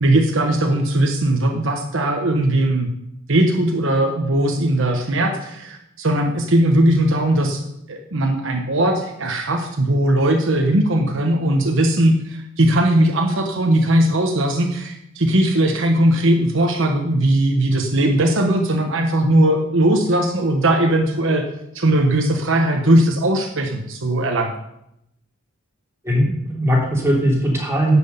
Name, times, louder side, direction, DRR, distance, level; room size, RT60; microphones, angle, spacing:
voice 1, 0.0-2.9 3.3-7.6 7.9-21.4 21.7-24.5, right 1 dB, 65° right, 3 dB, 1.2 m, -18 dB
voice 2, 26.0-28.0, equal, 10° right, -3 dB, 3.1 m, -19 dB
11.0 x 6.3 x 8.1 m, 0.83 s
head